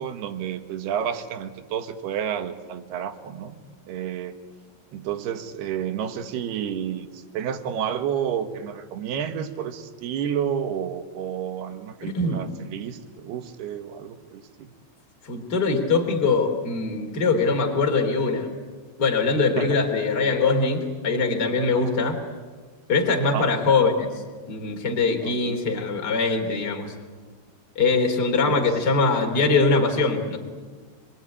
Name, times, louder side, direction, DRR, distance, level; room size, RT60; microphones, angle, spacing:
voice 1, 0.0-4.4 4.9-14.7 19.6-19.8 21.7-21.9 23.3-23.5 25.2-25.6 28.4-28.6, right 8 dB, 65° right, 8 dB, 3.1 m, -30 dB
voice 2, 12.0-12.5 15.2-18.5 19.0-22.2 22.9-24.1 24.5-26.9 27.7-30.4, left 4 dB, 25° left, 2 dB, 3.3 m, -22 dB
27.5 x 22.0 x 9.8 m, 1.5 s
omnidirectional pair, 5.4 m